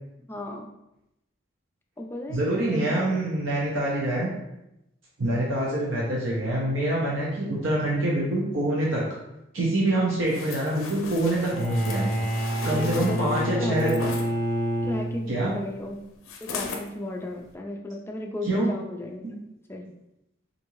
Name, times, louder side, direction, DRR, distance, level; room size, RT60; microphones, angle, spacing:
voice 1, 0.3-0.7 2.0-3.1 11.6-11.9 12.7-14.0 14.8-16.0 16.4-19.2 19.7-19.9, left 1 dB, 10° left, 1 dB, 0.3 m, -34 dB
voice 2, 2.3-4.3 5.2-9.0 9.5-12.1 12.6-13.9 15.3-15.5 18.5-18.7 19.2-19.3, right 1 dB, 70° right, -5 dB, 0.7 m, -25 dB
sound 1, 10.3-14.3 16.2-16.9 17.4-17.5, left 4 dB, 80° left, 0.5 m, -38 dB
Bowed string instrument, 11.5-15.6, equal, 40° left, 0.7 m, -28 dB
3.6 x 2.6 x 3.0 m, 0.87 s
head